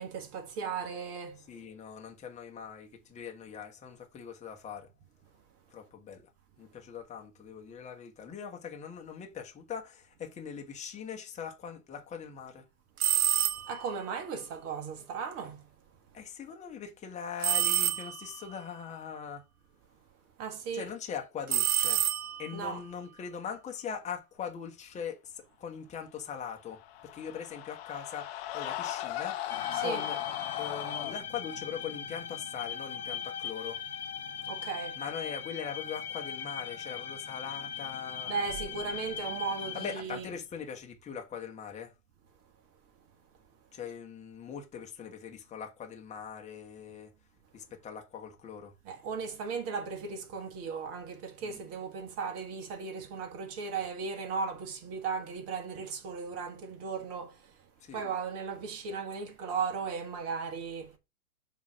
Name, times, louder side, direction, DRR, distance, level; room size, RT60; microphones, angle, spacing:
voice 1, 0.0-1.4 13.6-15.7 20.4-20.9 22.5-22.8 29.7-30.0 34.4-35.0 38.3-40.3 48.8-57.4 57.9-61.0, right 5 dB, 30° right, 1.5 m, -36 dB
voice 2, 1.4-4.9 5.7-6.3 6.6-12.6 16.1-19.4 20.7-22.0 22.4-29.4 29.8-30.2 30.6-33.8 34.9-38.4 39.7-41.9 43.7-47.1 47.5-48.7 51.4-51.6 57.8-58.0, left 7 dB, 15° left, 1.3 m, -41 dB
sound 1, 13.0-13.9 17.4-18.4 21.5-22.6, right 11 dB, 80° right, 0.5 m, -28 dB
sound 2, 26.7-31.1, left 13 dB, 45° left, 1.0 m, -37 dB
sound 3, 29.5-40.0, left 8 dB, 80° left, 1.0 m, -39 dB
7.2 x 3.0 x 5.9 m
figure-of-eight pair, 105°, 44 cm